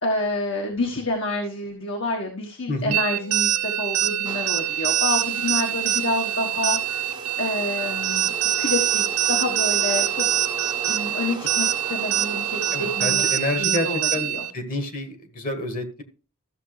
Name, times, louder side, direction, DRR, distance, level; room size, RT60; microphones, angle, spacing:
voice 1, 0.0-7.0 7.4-10.3 10.8-13.2 13.5-14.4, left 2 dB, 60° left, 1 dB, 1.4 m, -28 dB
sound 1, 2.9-14.5, right 11 dB, 85° right, 0.6 m, -24 dB
sound 2, 4.3-14.4, right 3 dB, 20° right, 1.0 m, -38 dB
voice 2, 12.7-16.0, left 2 dB, 40° left, 7 dB, 1.4 m, -29 dB
13.5 x 6.7 x 3.3 m, 0.35 s
head